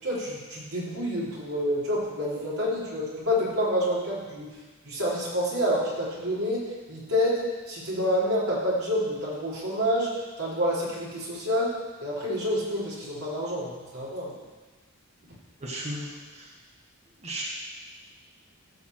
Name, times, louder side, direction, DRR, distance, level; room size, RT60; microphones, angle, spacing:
voice 1, 0.0-4.5 4.8-6.6 6.9-10.1 10.4-11.7 12.0-14.3, equal, 90° right, -7 dB, 3.5 m, -28 dB
voice 2, 15.6-16.5 17.2-17.4, right 1 dB, 30° right, -4 dB, 1.4 m, -35 dB
13.0 x 4.3 x 7.7 m, 1.3 s
head